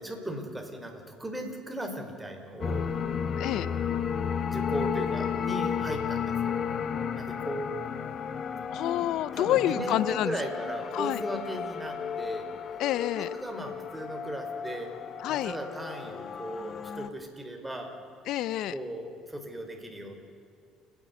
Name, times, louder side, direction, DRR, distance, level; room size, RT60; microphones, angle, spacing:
voice 1, 0.0-2.9 4.5-6.6 7.1-7.7 8.9-9.1 9.3-12.4 13.1-14.9 15.3-17.9 18.7-20.1, right 1 dB, 10° right, 3 dB, 4.6 m, -37 dB
sound 1, 2.6-17.1, left 7 dB, 50° left, 1.2 m, -33 dB
voice 2, 3.4-3.7 8.7-10.4 10.9-11.2 12.8-13.3 15.2-15.6 18.3-18.7, left 13 dB, 70° left, 17 dB, 0.6 m, -28 dB
30.0 x 11.0 x 9.5 m, 2.5 s
supercardioid pair, 85°, 0 cm